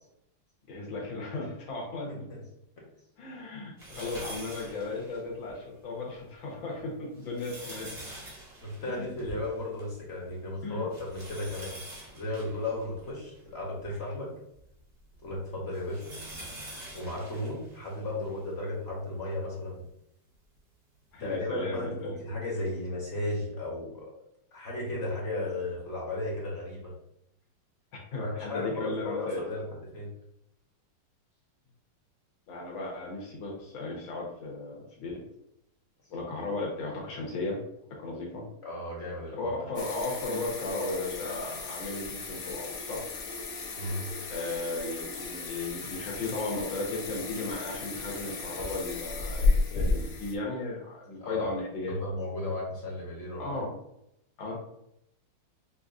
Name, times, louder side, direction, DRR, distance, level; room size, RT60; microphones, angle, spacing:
voice 1, 0.7-2.3 3.2-7.9 8.9-9.1 10.6-10.9 21.1-22.2 28.1-29.4 32.5-35.2 36.1-37.6 38.0-38.5 39.4-43.0 44.3-51.9 53.4-53.7 54.4-54.5, left 2 dB, 85° left, -2 dB, 1.8 m, -35 dB
voice 2, 2.1-2.4 8.6-11.8 12.1-14.3 15.2-16.2 16.9-19.8 21.2-24.0 24.5-26.9 28.2-29.6 29.9-30.1 38.6-39.6 43.8-44.1 51.2-51.5 51.9-53.5, left 1 dB, 40° left, -4 dB, 1.0 m, -35 dB
sound 1, 3.8-5.6 6.1-6.2 7.0-10.0 10.3-10.4 10.9-13.9 14.5-18.4 19.1-19.2 20.6-20.7, right 1 dB, 30° right, 0.8 m, -45 dB
sound 2, 39.8-50.4, left 3 dB, 65° left, 0.9 m, -33 dB
6.0 x 2.4 x 2.5 m, 0.80 s
omnidirectional pair, 2.1 m